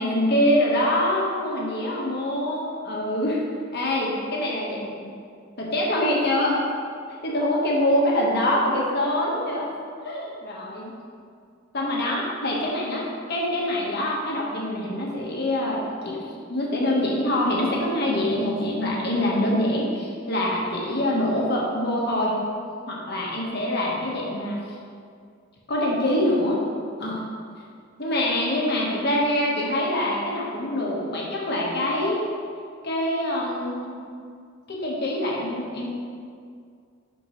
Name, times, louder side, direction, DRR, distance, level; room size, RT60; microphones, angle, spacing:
voice 1, 0.0-3.4 3.7-5.1 5.6-6.6 7.2-9.7 10.0-10.9 11.7-22.4 22.9-24.6 25.7-26.6 27.0-27.2 28.0-32.2 32.8-34.0 34.7-35.9, left 1 dB, 55° left, -3 dB, 1.4 m, -25 dB
11.0 x 4.5 x 3.2 m, 2.2 s
head